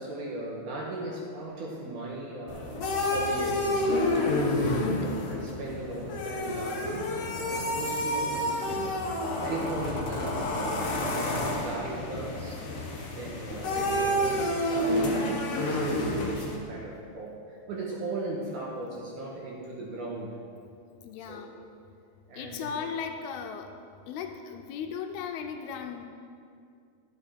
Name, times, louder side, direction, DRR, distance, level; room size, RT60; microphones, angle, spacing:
voice 1, 0.0-3.9 4.5-7.2 7.5-20.4 21.2-21.7 22.3-22.8, right 2 dB, 65° right, -3 dB, 2.2 m, -38 dB
sound 1, 2.5-16.6, left 1 dB, 65° left, 1.5 m, -29 dB
voice 2, 4.5-5.0 21.0-21.5 22.3-23.7 24.1-26.1, left 7 dB, 80° left, 5 dB, 2.5 m, -37 dB
13.0 x 8.3 x 4.3 m, 2.3 s
omnidirectional pair, 4.7 m